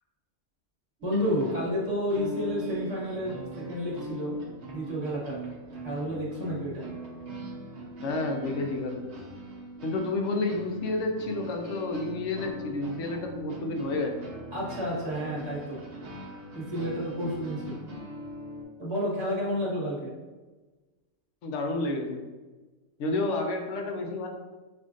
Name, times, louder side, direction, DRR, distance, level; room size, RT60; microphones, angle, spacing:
voice 1, 1.0-4.3 4.7-5.4 5.8-6.8 14.5-15.8 16.5-17.8 18.8-20.1, equal, 20° right, -6 dB, 1.2 m, -30 dB
sound 1, 1.0-18.6, right 1 dB, 65° right, 1.0 m, -41 dB
voice 2, 8.0-9.2 9.8-14.2 21.4-22.2 23.0-24.3, left 2 dB, 75° left, 3 dB, 0.9 m, -30 dB
5.6 x 2.5 x 2.4 m, 1.2 s
omnidirectional pair, 1.3 m